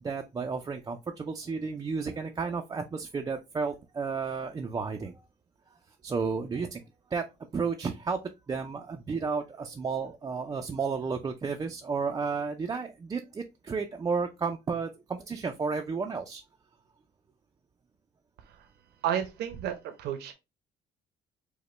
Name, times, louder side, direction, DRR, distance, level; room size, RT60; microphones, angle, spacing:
voice 1, 0.0-5.2 6.0-6.8 7.1-7.2 7.5-8.2 8.5-16.4, right 5 dB, 20° right, 0.4 m, -32 dB
voice 2, 19.0-20.3, right 9 dB, 75° right, 0.7 m, -32 dB
4.9 x 2.1 x 3.1 m
cardioid pair, 110°, 17 cm